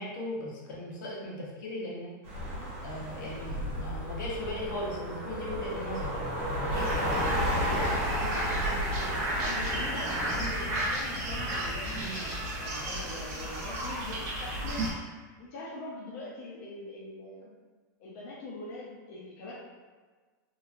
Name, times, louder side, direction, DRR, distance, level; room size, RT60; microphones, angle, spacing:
voice 1, 0.0-2.1 2.8-7.4 11.9-12.4, left 1 dB, 80° left, -4 dB, 0.8 m, -38 dB
sound 1, 2.2-10.4, equal, 40° right, 1.0 m, -33 dB
sound 2, 6.7-14.9, right 1 dB, 25° right, 0.5 m, -33 dB
voice 2, 6.9-14.8 15.4-17.5 18.0-19.5, left 2 dB, 40° left, -6 dB, 0.5 m, -43 dB
3.0 x 2.4 x 2.4 m, 1.4 s
supercardioid pair, 180°, 10 cm